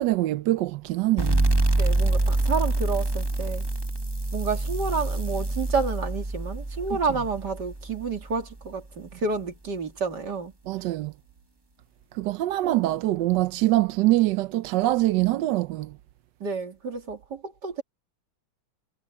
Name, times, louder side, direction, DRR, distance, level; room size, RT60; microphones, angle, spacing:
voice 1, 0.0-1.5 10.7-11.1 12.1-16.0, right 16 dB, 70° right, 1.1 m, -24 dB
sound 1, 1.2-8.4, right 2 dB, 20° right, 0.8 m, -26 dB
voice 2, 1.8-3.7 4.3-10.5 12.6-12.7 16.4-17.8, right 4 dB, 55° right, 3.1 m, -30 dB
omnidirectional pair, 2.2 m